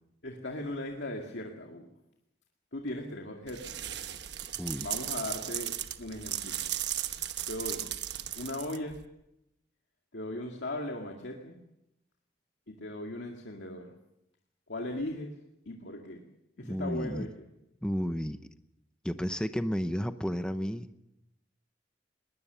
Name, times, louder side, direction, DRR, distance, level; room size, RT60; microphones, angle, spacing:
voice 1, 0.2-2.0 2.7-3.8 4.8-6.6 7.5-7.9 8.3-9.0 10.1-11.6 12.7-13.9 14.7-15.3 15.7-16.2 16.6-17.3, left 1 dB, 75° left, 1 dB, 2.2 m, -38 dB
sound 1, 3.5-9.0, right 11 dB, 65° right, 1.1 m, -36 dB
voice 2, 16.6-17.3 17.8-18.4 19.0-20.9, equal, 5° left, 9 dB, 0.8 m, -32 dB
21.0 x 20.0 x 6.9 m, 0.87 s
head